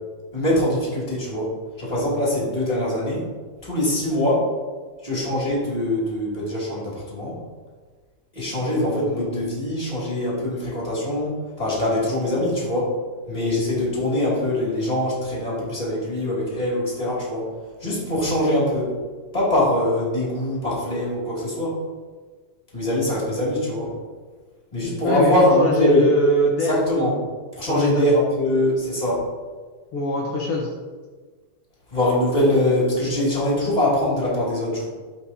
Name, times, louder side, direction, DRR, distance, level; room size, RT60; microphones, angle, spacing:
voice 1, 0.3-3.3 3.6-4.5 5.0-7.4 8.3-13.0 13.3-17.5 17.8-18.9 19.3-21.8 22.7-23.9 24.7-26.1 26.6-27.1 27.5-29.3 31.9-34.9, left 1 dB, 15° left, -6 dB, 1.8 m, -23 dB
voice 2, 25.0-27.1 27.7-28.1 29.9-30.7, left 1 dB, 90° left, -3 dB, 1.2 m, -22 dB
13.0 x 4.5 x 2.8 m, 1.4 s
omnidirectional pair, 3.9 m